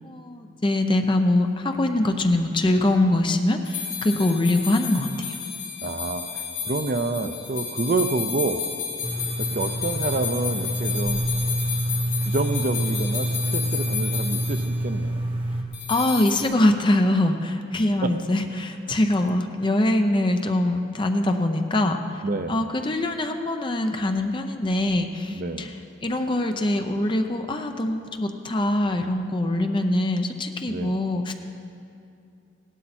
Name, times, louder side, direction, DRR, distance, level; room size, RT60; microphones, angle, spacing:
voice 1, 0.0-5.4 15.9-22.2 22.5-25.7 26.0-31.3, left 1 dB, 25° left, 5 dB, 0.6 m, -23 dB
sound 1, 3.6-14.7 15.7-16.4, left 7 dB, 65° left, 3.4 m, -32 dB
voice 2, 5.8-8.7 9.4-11.2 12.2-15.2 18.0-18.1 22.2-22.7 25.3-25.7 30.7-31.0, right 3 dB, 45° right, 9 dB, 0.5 m, -28 dB
sound 2, 9.0-15.6, right 1 dB, 25° right, 0.8 m, -27 dB
17.0 x 12.0 x 4.3 m, 2.6 s
head